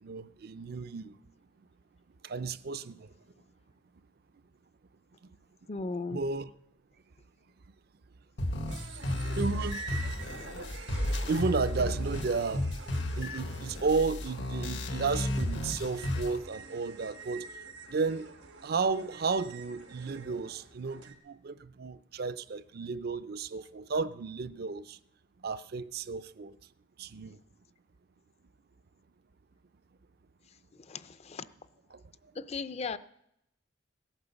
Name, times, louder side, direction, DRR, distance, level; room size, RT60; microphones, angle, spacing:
voice 1, 0.0-1.1 2.2-3.1 6.1-6.5 9.2-9.8 11.3-12.7 13.2-17.5 17.9-18.3 18.6-25.0 25.4-26.6 27.0-27.4 31.9-32.0, right 4 dB, 55° right, 0.5 m, -33 dB
voice 2, 5.7-6.2 30.9-31.5 32.4-33.0, left 4 dB, 35° left, 0.5 m, -36 dB
sound 1, 8.4-16.4, left 1 dB, 70° left, 1.3 m, -33 dB
sound 2, 8.7-21.1, right 5 dB, 85° right, 1.4 m, -47 dB
17.0 x 8.9 x 7.0 m
head